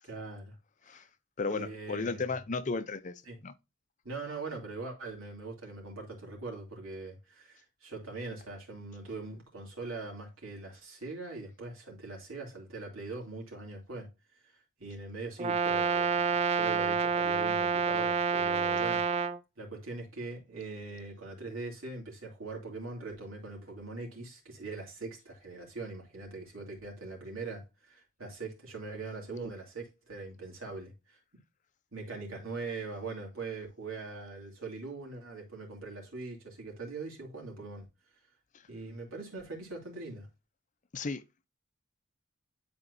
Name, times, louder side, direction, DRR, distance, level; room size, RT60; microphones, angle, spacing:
voice 1, 0.0-0.6 0.9-1.1 1.5-2.2 3.3-3.4 4.0-14.1 14.4-19.2 19.6-31.2 31.9-37.9 38.7-40.3, right 3 dB, 90° right, 2.8 m, -42 dB
voice 2, 1.4-3.1 3.4-3.5 40.9-41.5, left 4 dB, 35° left, 0.5 m, -34 dB
Brass instrument, 15.4-19.4, right 5 dB, 30° right, 0.4 m, -28 dB
10.5 x 4.3 x 2.6 m
head